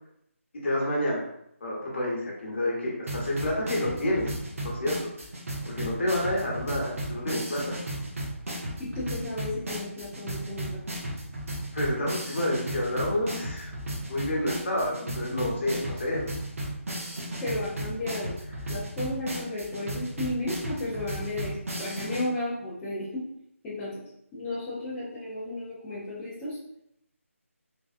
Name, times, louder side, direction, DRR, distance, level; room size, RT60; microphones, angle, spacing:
voice 1, 0.6-1.3 1.6-4.3 4.6-4.9 5.6-7.8 11.7-13.7 14.1-16.3, left 1 dB, 50° left, -3 dB, 1.0 m, -29 dB
sound 1, 3.1-22.2, right 1 dB, 70° right, 0.8 m, -35 dB
voice 2, 8.8-10.8 17.4-18.4 18.7-23.2 23.6-24.0 24.3-26.6, left 2 dB, 10° left, -10 dB, 0.4 m, -33 dB
3.4 x 2.2 x 2.5 m, 0.76 s
figure-of-eight pair, 160°, 8 cm